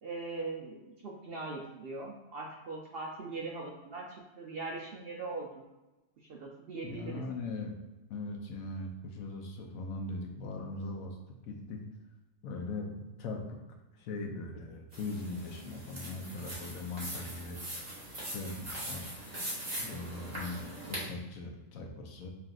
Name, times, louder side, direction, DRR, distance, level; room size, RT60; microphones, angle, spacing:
voice 1, 0.0-5.7 6.3-7.2, right 3 dB, 65° right, -1 dB, 0.6 m, -41 dB
voice 2, 6.8-7.8 8.1-11.2 11.4-11.8 12.4-13.4 14.0-17.6 18.2-19.1 19.8-22.3, left 2 dB, 80° left, 2 dB, 1.1 m, -40 dB
sound 1, 14.9-21.1, right 1 dB, 35° right, 1.1 m, -41 dB
5.7 x 2.5 x 2.4 m, 1.0 s
omnidirectional pair, 1.4 m